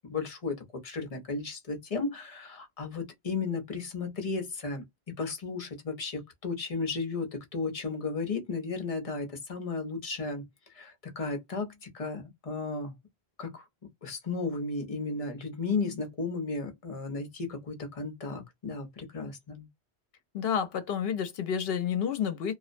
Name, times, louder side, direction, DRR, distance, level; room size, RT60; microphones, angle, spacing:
voice 1, 0.1-0.6 0.8-10.4 10.7-12.9 13.4-13.7 14.0-19.7, left 4 dB, 40° left, 0.7 m, -34 dB
voice 2, 20.3-22.5, left 8 dB, 70° left, 0.8 m, -30 dB
2.5 x 2.1 x 2.5 m
omnidirectional pair, 1.1 m